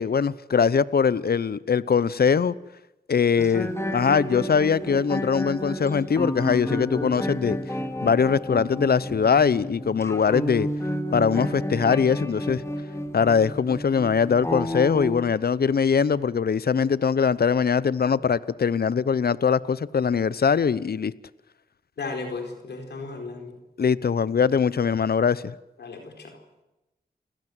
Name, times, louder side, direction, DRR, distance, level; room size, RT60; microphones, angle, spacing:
voice 1, 0.0-2.5 3.1-7.6 8.0-10.7 11.1-12.6 13.1-21.1 23.8-25.5, left 6 dB, 70° left, 0.9 m, -22 dB
sound 1, 3.4-15.2, equal, 15° left, 2.8 m, -31 dB
voice 2, 22.0-23.6 25.8-26.4, left 3 dB, 90° left, 4.4 m, -35 dB
29.0 x 17.0 x 8.0 m
cardioid pair, 45°, 17 cm